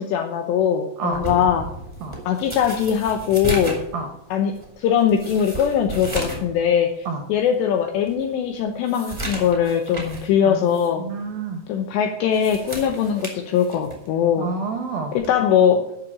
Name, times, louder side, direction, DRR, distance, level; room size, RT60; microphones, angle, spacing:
voice 1, 0.0-1.7 2.3-3.8 4.3-11.1 11.7-14.5 15.1-15.8, left 8 dB, 80° left, 5 dB, 2.6 m, -21 dB
sound 1, 1.1-6.5 6.9-7.0 7.5-7.6 8.1-10.3 10.7-10.9 12.1-14.1 15.2-15.4, right 2 dB, 20° right, 0.7 m, -34 dB
voice 2, 10.4-11.6 14.4-15.2, right 4 dB, 75° right, 4 dB, 2.2 m, -28 dB
9.8 x 6.7 x 8.5 m, 0.83 s
omnidirectional pair, 5.7 m